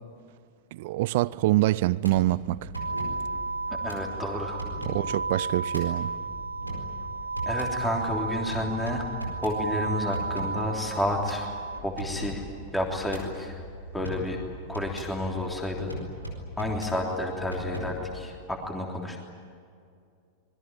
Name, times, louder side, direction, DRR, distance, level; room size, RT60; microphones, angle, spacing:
voice 1, 0.7-2.7 4.8-6.1, right 17 dB, 50° right, 0.6 m, -25 dB
sound 1, 2.0-18.3, equal, 90° left, 4.4 m, -39 dB
sound 2, 2.8-11.8, right 4 dB, 70° right, 1.1 m, -33 dB
voice 2, 3.8-4.7 7.4-9.1 9.4-11.5 11.8-12.4 12.7-13.6 13.9-14.4 14.7-15.9 16.6-19.2, left 1 dB, 10° left, 3.4 m, -30 dB
26.0 x 21.5 x 9.2 m
figure-of-eight pair, 90°, 0 cm